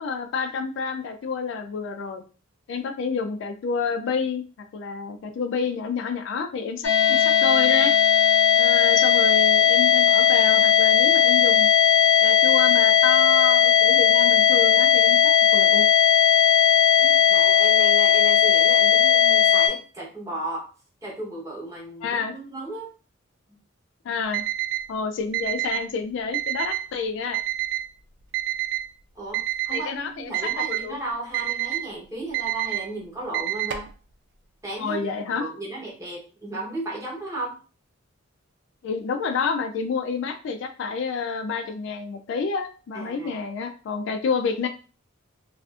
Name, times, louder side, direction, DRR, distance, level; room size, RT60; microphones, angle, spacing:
voice 1, 0.0-2.2 2.7-4.4 4.7-7.9 8.6-11.7 12.2-15.8 22.0-22.3 24.0-24.4 24.9-27.4 29.7-31.0 34.8-35.4 38.8-44.7, left 5 dB, 60° left, 7 dB, 0.3 m, -29 dB
sound 1, 6.8-19.7, left 9 dB, 80° left, 0.7 m, -17 dB
voice 2, 17.0-20.7 21.0-22.9 23.5-23.6 29.1-33.9 34.6-37.6 42.9-43.3, right 2 dB, 15° right, -4 dB, 0.9 m, -35 dB
Alarm, 24.3-24.8 25.3-25.8 26.3-26.8 27.3-27.8 28.3-28.8 29.3-29.8 30.3-30.8 31.3-31.8 32.3-32.8 33.3-33.9, right 15 dB, 55° right, 0.3 m, -27 dB
2.4 x 2.4 x 2.3 m, 0.36 s
head